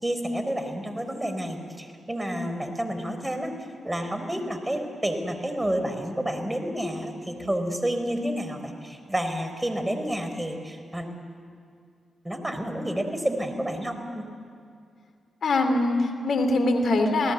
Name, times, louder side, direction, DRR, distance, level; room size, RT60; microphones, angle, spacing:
voice 1, 0.0-3.6 3.8-11.1 12.2-14.2, equal, 15° right, 7 dB, 4.4 m, -30 dB
voice 2, 15.4-17.3, left 2 dB, 65° left, 7 dB, 3.0 m, -23 dB
28.5 x 17.5 x 8.2 m, 2.3 s
supercardioid pair, 40°, 0 cm